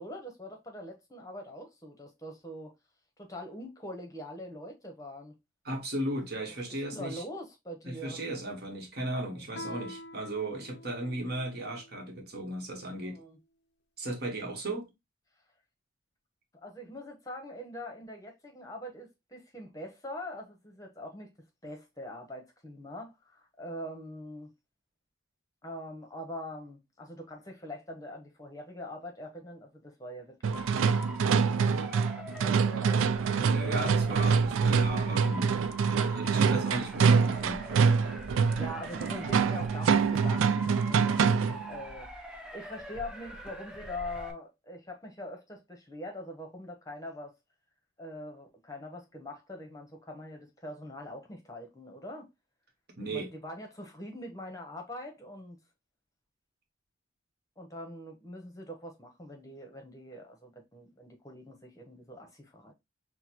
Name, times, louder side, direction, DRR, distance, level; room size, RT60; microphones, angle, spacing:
voice 1, 0.0-2.7 3.2-5.3 6.7-8.2 9.4-9.6 13.0-13.4 16.6-21.3 21.6-24.5 25.6-30.5 31.4-33.1 33.7-34.1 38.6-41.2 41.7-42.1 42.5-47.3 48.0-52.3 53.1-55.6 57.6-62.7, left 1 dB, 15° left, 0.9 m, -43 dB
voice 2, 5.6-7.2 7.9-13.2 14.0-14.9 33.5-35.5 35.9-37.7 53.0-53.3, right 1 dB, 50° right, 1.3 m, -36 dB
Guitar, 9.5-12.0, left 1 dB, 55° left, 0.5 m, -46 dB
sound 1, 30.4-41.7, right 5 dB, 75° right, 0.3 m, -25 dB
Motor vehicle (road) / Siren, 30.5-44.3, equal, 5° right, 0.6 m, -44 dB
6.2 x 2.2 x 2.9 m
head